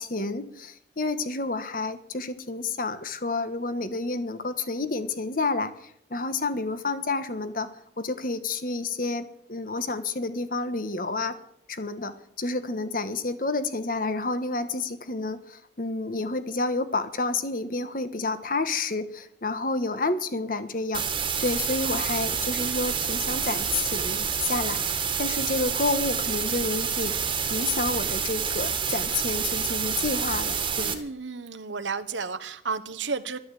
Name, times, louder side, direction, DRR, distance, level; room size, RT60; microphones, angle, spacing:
voice 1, 0.0-7.7 8.0-11.3 11.7-27.2 27.5-31.0, left 3 dB, 50° left, 11 dB, 1.3 m, -30 dB
sound 1, 20.9-30.9, right 7 dB, 25° right, 1.7 m, -28 dB
voice 2, 30.8-33.4, right 5 dB, 90° right, 11 dB, 1.1 m, -32 dB
12.5 x 12.0 x 8.3 m, 0.71 s
head